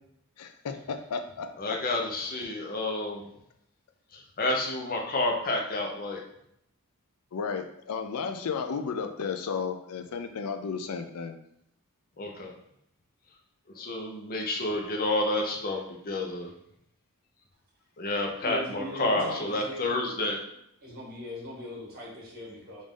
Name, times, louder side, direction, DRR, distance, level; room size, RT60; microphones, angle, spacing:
voice 1, 0.4-2.0 7.3-11.3 19.1-19.4, left 5 dB, 90° left, 7 dB, 0.5 m, -34 dB
voice 2, 1.6-3.3 4.4-6.2 12.2-12.5 13.8-15.8 16.0-16.5 18.0-20.4, left 2 dB, 40° left, 1 dB, 0.7 m, -29 dB
voice 3, 18.4-20.3 20.8-22.8, left 1 dB, 45° right, -4 dB, 1.6 m, -40 dB
5.0 x 2.6 x 3.7 m, 0.77 s
head